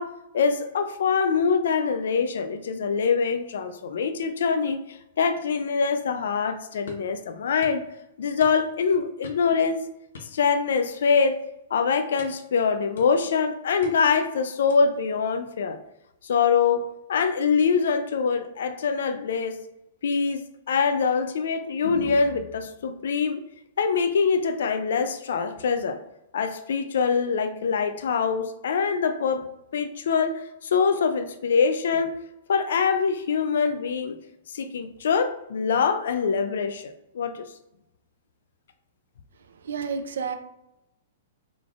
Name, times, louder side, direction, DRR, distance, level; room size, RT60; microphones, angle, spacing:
voice 1, 0.0-7.8 8.2-9.8 10.2-11.4 11.7-15.8 16.2-19.6 20.0-23.4 23.8-26.0 26.3-29.4 29.7-32.2 32.5-34.2 34.5-37.5, left 5 dB, 65° left, 9 dB, 0.3 m, -24 dB
sound 1, 6.9-7.1 7.6-7.8 8.4-8.8 9.2-9.6 10.1-10.9 11.2-11.5 12.2-12.5 13.0-13.4 13.8-14.2 14.7-15.0, left 4 dB, 90° left, 0.7 m, -45 dB
voice 2, 39.6-40.4, right 6 dB, 80° right, 8 dB, 0.5 m, -30 dB
3.8 x 3.2 x 2.4 m, 0.90 s
hypercardioid pair, 180°, 0 cm